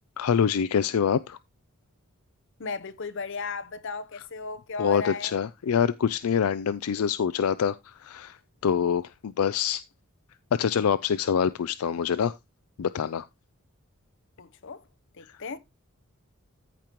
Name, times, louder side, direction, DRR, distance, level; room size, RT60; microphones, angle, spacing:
voice 1, 0.2-1.4 4.8-8.4 8.6-9.8 10.5-12.3 12.8-13.3, left 7 dB, 80° left, 0.4 m, -25 dB
voice 2, 2.6-5.3 14.4-14.9 15.1-15.6, left 4 dB, 60° left, 0.8 m, -35 dB
14.5 x 5.2 x 2.9 m
head